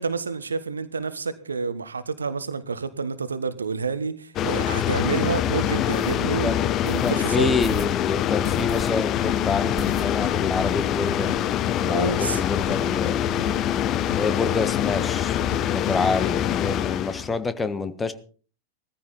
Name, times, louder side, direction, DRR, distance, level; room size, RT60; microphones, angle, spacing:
voice 1, 0.0-7.5 11.8-12.4, right 5 dB, 75° right, 1.3 m, -29 dB
sound 1, 4.4-17.4, left 11 dB, 35° left, 0.9 m, -25 dB
sound 2, 4.9-5.1 5.6-5.7 6.2-6.6 6.9-7.5 7.7-8.6 8.8-8.9 9.2-10.0 10.2-10.3 10.6-10.8 11.1-11.4 11.9-12.2 12.5-13.8 14.1-14.2 14.8-15.0 15.3-15.6 15.9-16.0, left 5 dB, 65° left, 2.7 m, -36 dB
sound 3, 5.9-6.2 6.8-7.1 7.6-7.9 8.4-8.9 9.2-9.3 9.8-10.4 10.8-10.9 11.1-11.2 11.5-12.1, right 1 dB, 5° right, 6.0 m, -39 dB
voice 2, 7.0-13.2 14.1-15.4 15.7-18.1, left 4 dB, 15° left, 1.4 m, -27 dB
17.5 x 14.5 x 4.2 m
figure-of-eight pair, 90°, 0 cm